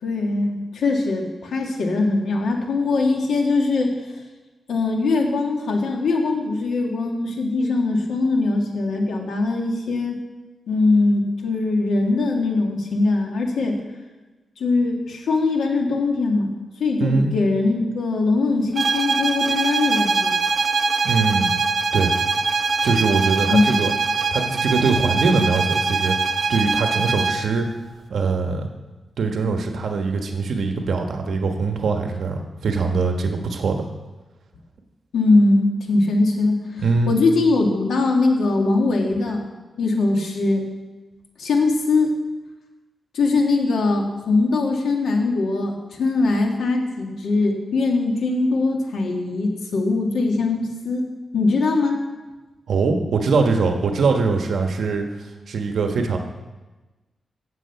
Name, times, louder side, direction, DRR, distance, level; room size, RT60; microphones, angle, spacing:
voice 1, 0.0-4.0 4.7-10.2 10.7-13.8 14.6-16.5 16.8-20.3 23.5-23.8 35.1-39.4 39.8-40.7 41.4-42.1 43.1-45.7 46.0-51.1 51.3-52.0, left 3 dB, 90° left, 2 dB, 2.0 m, -21 dB
sound 1, 18.7-27.5, right 4 dB, 50° right, 0.8 m, -22 dB
voice 2, 21.0-21.5 21.9-22.1 22.8-23.9 24.3-26.2 26.5-27.7 28.1-28.7 29.2-33.9 36.8-37.2 52.7-55.0 55.5-56.2, right 4 dB, 70° right, 4 dB, 1.3 m, -22 dB
16.5 x 7.4 x 5.8 m, 1.2 s
wide cardioid pair, 130°, 0 cm